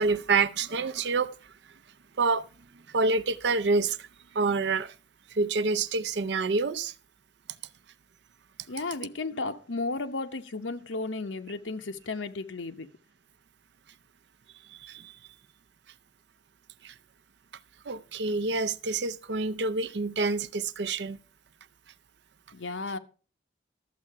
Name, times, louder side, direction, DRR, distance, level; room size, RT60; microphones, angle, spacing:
voice 1, 0.0-1.3 2.2-2.5 2.9-4.1 4.3-4.9 5.3-6.9 14.7-15.2 16.8-16.9 17.9-21.2, right 3 dB, 65° right, 0.6 m, -27 dB
voice 2, 8.7-12.9 22.5-23.0, left 3 dB, 90° left, 1.0 m, -34 dB
12.5 x 7.6 x 4.8 m
head